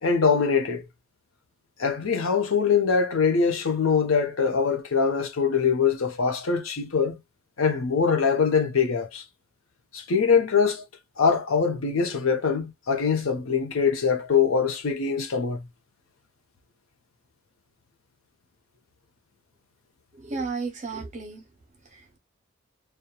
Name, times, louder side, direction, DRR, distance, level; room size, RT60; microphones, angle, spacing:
voice 1, 0.0-0.8 1.8-7.2 7.6-9.2 9.9-10.8 11.2-15.6, left 5 dB, 80° left, 0.7 m, -23 dB
voice 2, 20.1-21.4 21.9-22.2, right 4 dB, 35° right, 0.8 m, -33 dB
2.8 x 2.2 x 2.2 m
head